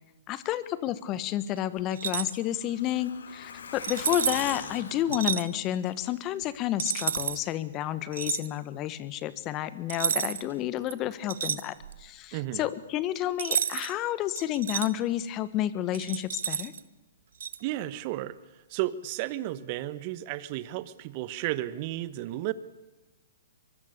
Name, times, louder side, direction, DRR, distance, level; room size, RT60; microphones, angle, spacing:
voice 1, 0.3-16.7, left 12 dB, 30° left, 15 dB, 1.5 m, -30 dB
Truck, 1.8-6.4 6.7-6.8 7.2-7.3, left 5 dB, 75° left, 2.7 m, -42 dB
sound 1, 1.9-2.4 3.8-4.6 5.1-5.4 6.8-7.4 8.1-8.5 9.9-10.5 10.9-12.1 13.4-13.9 14.4-14.9 15.9-16.8 17.4-17.6, right 8 dB, 70° right, 1.1 m, -30 dB
voice 2, 12.3-12.6 17.6-18.4 18.7-22.5, right 15 dB, 40° right, 15 dB, 1.3 m, -33 dB
24.0 x 23.0 x 6.9 m, 1.2 s
hypercardioid pair, 125°, 0 cm